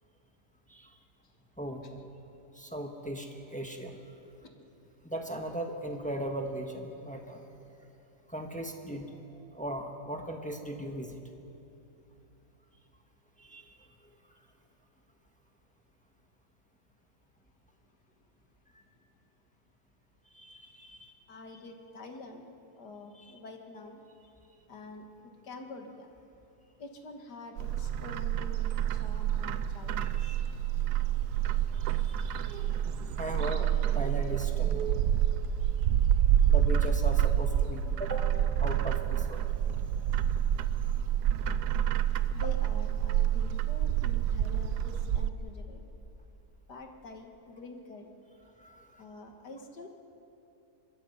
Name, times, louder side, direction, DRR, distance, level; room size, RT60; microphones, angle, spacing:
voice 1, 2.5-4.0 5.0-7.4 8.3-9.1 9.5-11.2 13.4-13.7 20.3-21.1 23.1-23.3 30.0-30.5 31.7-32.7 33.0-35.0 36.5-38.2 38.6-39.5 40.0-40.3 48.6-49.0, right 1 dB, 5° left, 3 dB, 1.4 m, -38 dB
voice 2, 21.3-22.4 22.8-24.0 24.7-26.1 26.8-30.4 42.3-45.8 46.7-48.1 49.0-49.9, left 3 dB, 85° left, 4 dB, 2.3 m, -46 dB
Bird, 27.6-45.3, right 10 dB, 85° right, 1.2 m, -28 dB
25.0 x 21.5 x 5.7 m, 2.9 s
omnidirectional pair, 1.7 m